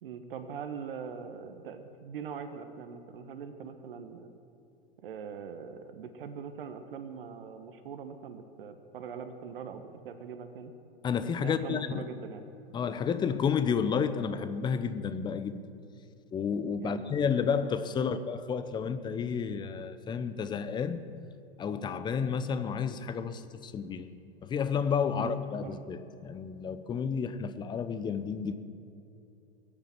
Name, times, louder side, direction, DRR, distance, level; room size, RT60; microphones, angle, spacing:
voice 1, 0.0-4.3 5.0-10.7 11.4-12.4 16.8-17.0 17.9-18.2 25.1-25.7, right 6 dB, 60° right, 8 dB, 1.2 m, -42 dB
voice 2, 11.0-12.1 12.7-15.6 16.3-21.0 21.6-24.1 24.4-28.6, left 6 dB, 15° left, 12 dB, 0.6 m, -31 dB
21.5 x 8.8 x 6.0 m, 2.7 s
figure-of-eight pair, 105°, 32 cm